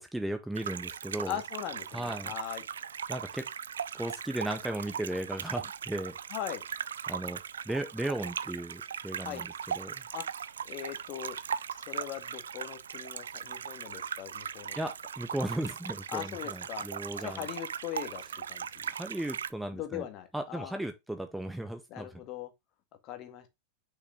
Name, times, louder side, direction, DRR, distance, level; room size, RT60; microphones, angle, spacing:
voice 1, 0.0-1.4 1.9-2.3 3.1-3.5 3.9-6.2 7.1-7.4 7.6-9.9 14.7-17.5 18.9-20.1 20.3-22.2, right 1 dB, 5° right, 1.1 m, -36 dB
sound 1, 0.6-19.5, right 7 dB, 65° right, 0.4 m, -39 dB
voice 2, 1.3-2.6 6.3-6.6 9.2-9.4 10.1-10.3 10.7-11.4 11.9-14.8 16.1-16.9 17.2-18.2 18.5-18.9 19.7-20.8 21.9-22.5 23.0-23.5, left 11 dB, 40° left, 1.9 m, -40 dB
6.3 x 6.1 x 3.5 m
figure-of-eight pair, 90°, 0 cm